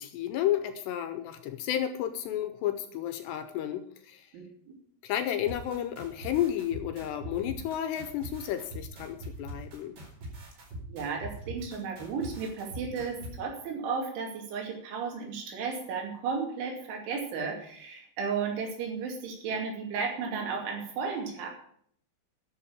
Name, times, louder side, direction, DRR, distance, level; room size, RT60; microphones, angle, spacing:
voice 1, 0.0-4.3 5.0-10.0, left 11 dB, 80° left, 9 dB, 2.7 m, -32 dB
sound 1, 5.5-13.3, equal, 55° right, 6.4 m, -42 dB
voice 2, 10.9-21.5, right 5 dB, 80° right, 1 dB, 5.0 m, -34 dB
11.5 x 6.7 x 8.6 m, 0.63 s
omnidirectional pair, 5.4 m